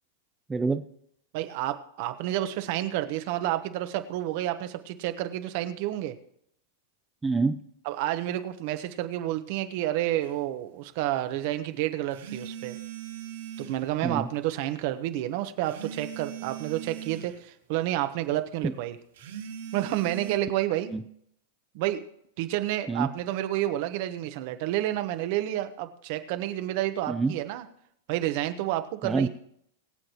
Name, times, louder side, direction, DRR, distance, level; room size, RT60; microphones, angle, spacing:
voice 1, 0.5-0.8 7.2-7.6 14.0-14.3 18.6-18.7 20.9-21.0 22.9-23.1 27.1-27.3 29.0-29.3, right 4 dB, 15° right, 7 dB, 0.6 m, -26 dB
voice 2, 1.3-6.1 7.8-12.8 13.6-19.0 19.7-20.9 21.7-22.0 22.4-27.6 28.1-29.3, right 13 dB, 55° right, 9 dB, 1.0 m, -30 dB
sound 1, 10.2-10.3 12.1-13.9 15.6-17.4 19.1-20.4, right 10 dB, 75° right, 2.4 m, -40 dB
22.5 x 7.7 x 3.0 m, 0.71 s
hypercardioid pair, 105°, 0 cm